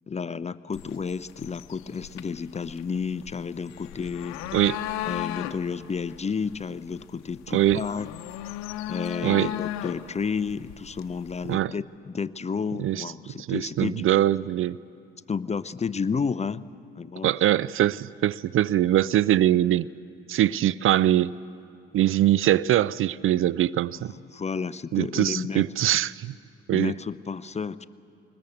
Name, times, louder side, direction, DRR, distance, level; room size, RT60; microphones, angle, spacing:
voice 1, 0.1-4.4 5.0-8.1 8.9-14.1 15.3-16.6 17.0-17.4 23.9-25.6 26.7-27.9, left 5 dB, 25° left, 17 dB, 0.6 m, -31 dB
sound 1, 0.7-11.6, left 13 dB, 70° left, 0.8 m, -37 dB
voice 2, 9.2-9.5 11.5-11.7 12.8-13.0 13.4-14.8 17.2-19.9 20.3-21.3 21.9-24.1 24.9-26.3 26.7-26.9, right 13 dB, 45° right, 21 dB, 0.4 m, -22 dB
21.0 x 20.5 x 8.0 m, 2.7 s
hypercardioid pair, 50°, 29 cm